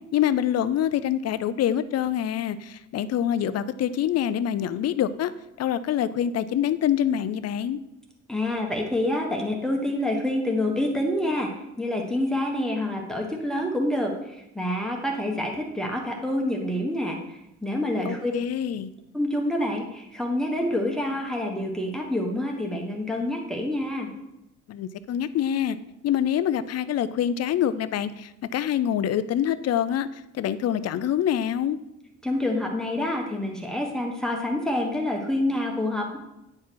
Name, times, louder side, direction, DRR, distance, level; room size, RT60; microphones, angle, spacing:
voice 1, 0.1-5.3 5.6-7.8 18.1-18.9 24.7-25.8 26.0-30.1 30.4-31.8, left 10 dB, 55° left, 14 dB, 0.5 m, -25 dB
voice 2, 8.3-18.3 19.1-24.1 32.2-36.2, left 1 dB, ahead, 0 dB, 1.4 m, -27 dB
9.5 x 4.8 x 4.6 m, 0.89 s
cardioid pair, 90°, 30 cm